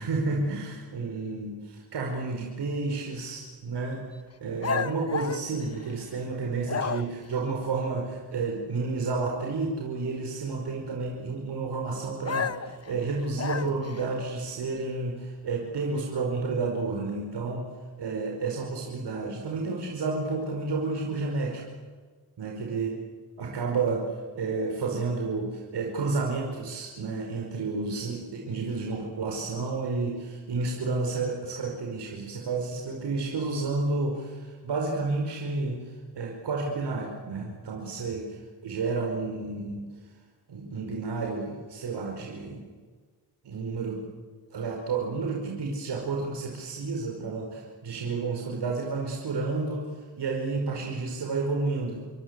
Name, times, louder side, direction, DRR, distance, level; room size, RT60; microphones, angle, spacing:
voice 1, 0.0-4.0 4.4-17.7 18.0-21.6 22.4-22.9 23.4-24.0 24.3-39.8 40.5-42.6 43.4-44.0 44.5-52.0, right 3 dB, 75° right, 0 dB, 5.2 m, -31 dB
sound 1, 4.6-6.2 6.6-7.3 12.2-14.0, left 6 dB, 35° left, 1.3 m, -32 dB
29.0 x 23.0 x 8.2 m, 1.5 s
cardioid pair, 85°, 41 cm